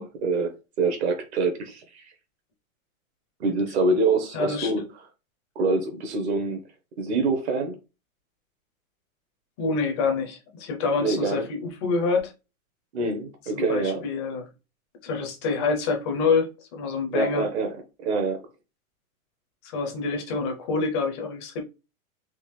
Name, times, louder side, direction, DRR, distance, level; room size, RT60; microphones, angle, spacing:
voice 1, 0.0-2.1 3.4-4.9 5.5-6.6 7.0-7.8 11.0-11.4 12.9-14.0 17.1-17.7 18.0-18.4, right 3 dB, 50° right, 0.9 m, -25 dB
voice 2, 4.3-4.7 9.6-12.3 13.5-14.5 15.0-17.5 19.6-21.6, left 4 dB, 20° left, 0.5 m, -26 dB
3.7 x 2.5 x 3.0 m
hypercardioid pair, 155°, 42 cm